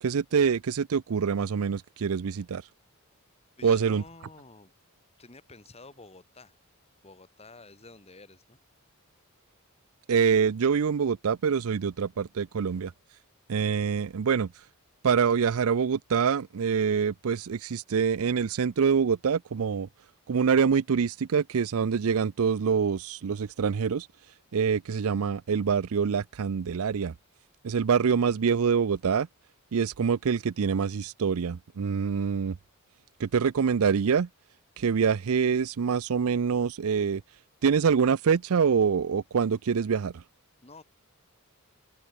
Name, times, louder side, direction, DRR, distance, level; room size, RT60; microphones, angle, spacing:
voice 1, 0.0-2.6 3.6-4.0 10.1-12.9 13.5-14.5 15.0-19.9 20.3-24.1 24.5-27.1 27.6-29.3 29.7-32.6 33.2-34.3 34.8-37.2 37.6-40.2, right 6 dB, 70° right, 0.5 m, -25 dB
voice 2, 3.6-4.7 5.2-6.6 7.0-8.6 40.6-40.8, left 3 dB, 30° left, 2.8 m, -50 dB
open air
head